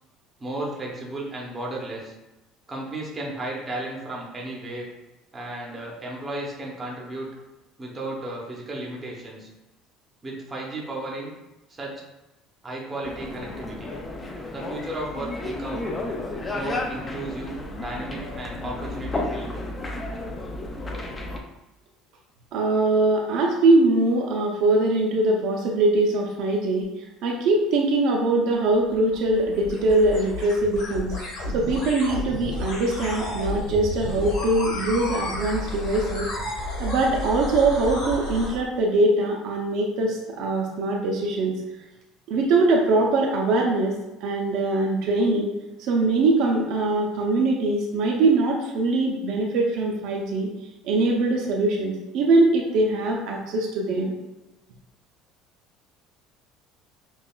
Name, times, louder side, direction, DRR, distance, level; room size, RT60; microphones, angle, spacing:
voice 1, 0.4-2.2 2.7-4.9 5.3-7.3 7.8-9.5 10.2-11.3 11.7-12.0 12.6-13.9 14.5-15.9 16.5-19.6, right 1 dB, 15° right, -2 dB, 0.7 m, -34 dB
sound 1, 13.0-21.4, left 2 dB, 15° left, 0.4 m, -32 dB
voice 2, 22.5-36.3 36.8-41.6 42.3-44.0 44.2-45.5 45.8-50.5 50.8-54.1, right 2 dB, 55° right, 0 dB, 0.5 m, -22 dB
sound 2, 28.7-38.6, left 1 dB, 60° left, 1.3 m, -32 dB
5.4 x 2.3 x 2.3 m, 1.0 s
cardioid pair, 170°, 0 cm